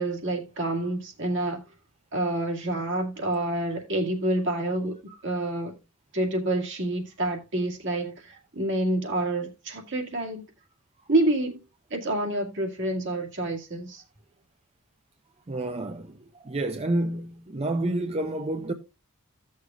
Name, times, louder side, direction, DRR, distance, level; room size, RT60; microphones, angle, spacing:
voice 1, 0.0-1.6 2.1-5.0 5.2-5.7 6.1-10.4 11.1-11.6 11.9-14.0, right 1 dB, 60° right, 2.1 m, -28 dB
voice 2, 15.5-18.7, right 1 dB, 30° right, 0.6 m, -29 dB
16.0 x 6.5 x 2.4 m
head